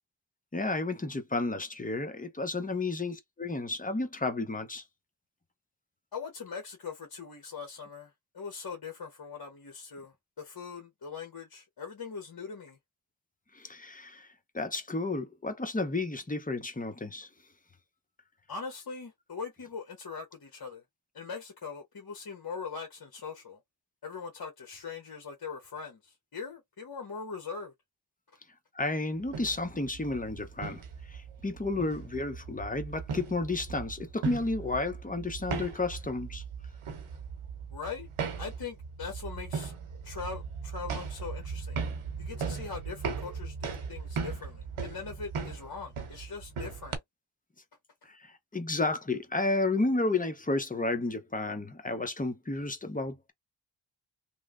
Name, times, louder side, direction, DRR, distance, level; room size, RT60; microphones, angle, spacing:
voice 1, 0.5-4.8 13.6-14.3 14.5-17.3 28.8-30.8 31.4-36.4 48.5-53.3, left 2 dB, 15° left, 0.7 m, -32 dB
voice 2, 6.1-8.1 8.3-12.8 18.5-20.8 21.1-23.6 24.0-27.7 37.7-38.1 38.4-39.7 40.0-41.8 42.2-47.0, left 5 dB, 45° left, 1.0 m, -41 dB
sound 1, 29.2-47.0, right 5 dB, 80° right, 0.9 m, -38 dB
3.0 x 2.1 x 2.5 m
cardioid pair, 60°, 49 cm